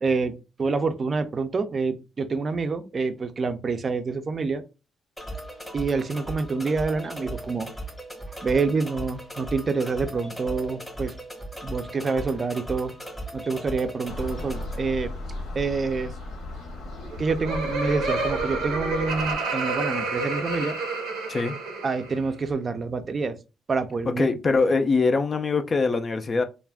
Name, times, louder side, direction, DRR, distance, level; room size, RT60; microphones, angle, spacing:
voice 1, 0.0-4.6 5.7-7.7 8.4-11.2 11.6-12.9 13.3-15.1 15.5-16.1 17.2-20.8 21.8-23.4 23.7-24.3, right 4 dB, 40° right, 0.4 m, -27 dB
sound 1, 5.2-14.8, right 1 dB, ahead, 0.8 m, -37 dB
sound 2, 14.0-19.4, left 2 dB, 85° left, 0.9 m, -36 dB
Laughter, 17.0-22.2, right 3 dB, 90° right, 0.6 m, -29 dB
voice 2, 24.1-26.4, left 4 dB, 35° left, 0.3 m, -23 dB
2.4 x 2.1 x 3.3 m
cardioid pair, 90°, 0 cm